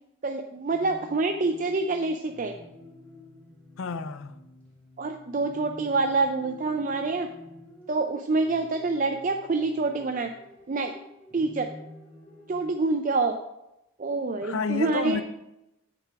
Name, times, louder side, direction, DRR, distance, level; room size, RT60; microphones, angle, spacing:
voice 1, 0.2-2.5 5.0-7.3 7.9-10.3 10.7-10.9 11.3-11.7 12.5-13.4 14.0-15.2, right 3 dB, 40° right, 0.4 m, -26 dB
sound 1, 0.7-12.7, left 1 dB, 5° left, 2.7 m, -49 dB
voice 2, 3.8-4.4 14.4-15.2, left 5 dB, 90° left, 0.6 m, -30 dB
7.6 x 6.8 x 4.9 m
head